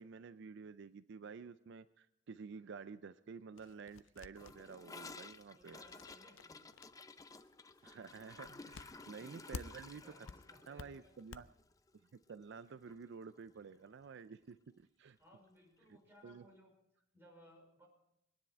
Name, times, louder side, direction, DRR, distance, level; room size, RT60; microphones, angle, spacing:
voice 1, 0.0-5.8 7.8-10.3 10.7-11.5 12.0-15.2 15.9-16.0 16.2-16.4, right 5 dB, 65° right, 13 dB, 0.4 m, -51 dB
sound 1, 3.6-10.0 10.3-11.4, left 4 dB, 85° left, 0.6 m, -52 dB
Gurgling / Toilet flush, 4.4-12.6 12.9-13.0 13.3-13.7 14.0-14.1 14.4-14.5 15.5-15.6, left 3 dB, 20° left, 0.5 m, -55 dB
voice 2, 5.6-6.7 9.2-9.5 10.0-11.4 15.2-17.9, equal, 10° right, -2 dB, 5.2 m, -63 dB
22.5 x 10.0 x 4.5 m, 0.79 s
head